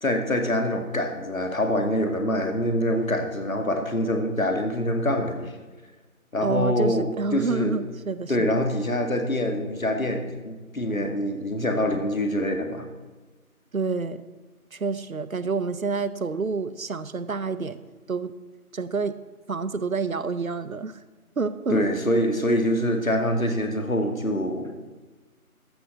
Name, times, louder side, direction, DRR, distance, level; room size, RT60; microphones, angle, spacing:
voice 1, 0.0-5.5 6.3-7.1 7.3-7.7 8.3-12.9 21.7-24.8, left 1 dB, 65° left, 5 dB, 2.1 m, -25 dB
voice 2, 6.4-8.5 13.7-14.2 14.7-17.8 18.1-18.3 18.7-19.2 19.5-21.0 21.4-21.8, right 4 dB, 70° right, 14 dB, 0.8 m, -28 dB
13.5 x 6.3 x 6.4 m, 1.2 s
figure-of-eight pair, 165°, 44 cm